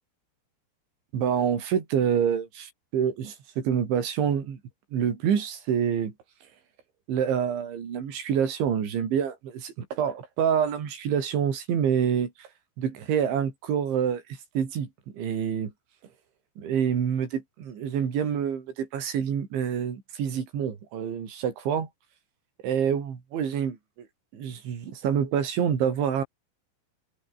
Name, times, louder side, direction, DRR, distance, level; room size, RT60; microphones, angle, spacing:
voice 1, 1.1-4.6 4.9-6.1 7.1-12.5 12.8-14.2 14.5-14.9 15.1-15.7 16.6-21.9 22.6-24.1 24.3-26.2, right 8 dB, 65° right, 6.2 m, -27 dB
omnidirectional pair, 5.9 m